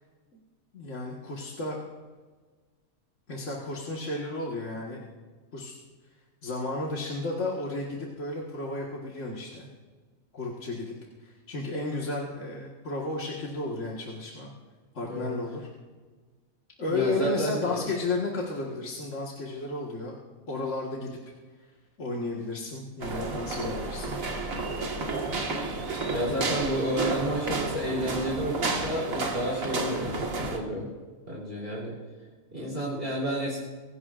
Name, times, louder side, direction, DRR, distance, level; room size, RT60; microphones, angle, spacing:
voice 1, 0.7-1.8 3.3-5.0 5.5-5.7 6.4-9.7 10.3-10.9 11.2-14.5 14.9-15.7 16.8-20.2 20.5-21.2 22.0-24.2, left 2 dB, 60° left, -3 dB, 2.0 m, -33 dB
voice 2, 15.0-15.4 16.9-17.8 26.1-30.9 31.3-32.0 32.5-33.6, equal, 40° right, -5 dB, 3.7 m, -31 dB
Japan Tokyo Train Station Shinjuku Footsteps, 23.0-30.6, right 3 dB, 70° right, 2.1 m, -31 dB
24.5 x 16.5 x 2.5 m, 1.4 s
omnidirectional pair, 1.4 m